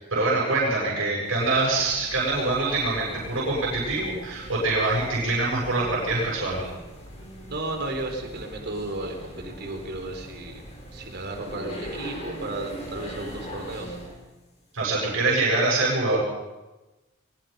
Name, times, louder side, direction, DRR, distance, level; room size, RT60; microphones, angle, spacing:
voice 1, 0.0-6.7 14.7-16.2, right 2 dB, 70° right, -5 dB, 7.2 m, -24 dB
sound 1, 1.3-14.2, equal, 30° left, 6.2 m, -41 dB
voice 2, 7.5-10.6 10.9-14.0, right 2 dB, 50° right, 3 dB, 3.9 m, -34 dB
23.0 x 21.0 x 5.5 m, 1.1 s
head